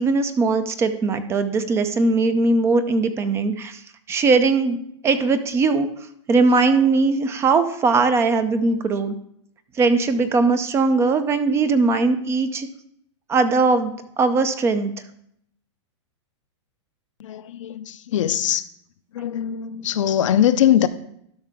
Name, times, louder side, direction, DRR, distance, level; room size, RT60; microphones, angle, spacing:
voice 1, 0.0-3.8 4.1-5.9 6.3-9.1 9.8-12.7 13.3-14.9, right 3 dB, 15° right, 11 dB, 0.5 m, -20 dB
voice 2, 17.2-18.6 19.1-20.9, left 10 dB, 75° left, 11 dB, 0.6 m, -21 dB
12.0 x 5.6 x 3.5 m, 0.72 s
hypercardioid pair, 145°, 16 cm